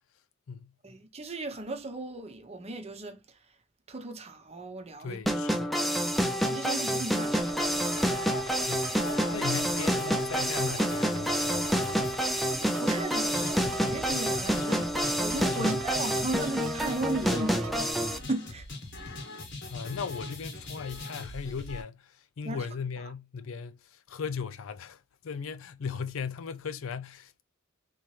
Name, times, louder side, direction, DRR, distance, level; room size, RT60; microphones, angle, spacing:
voice 1, 0.8-3.2 3.9-5.2 6.2-7.5 12.8-18.7 22.4-22.7, right 2 dB, 30° right, 0.8 m, -36 dB
voice 2, 5.0-5.7 8.6-8.9 9.3-12.1 15.6-15.8 19.1-19.2 19.7-27.4, left 6 dB, 75° left, 0.4 m, -38 dB
sound 1, 5.3-18.2, equal, ahead, 0.4 m, -28 dB
sound 2, 7.2-17.9, right 7 dB, 85° right, 0.6 m, -43 dB
sound 3, 7.4-21.8, left 2 dB, 60° left, 1.2 m, -42 dB
3.7 x 2.9 x 3.0 m
head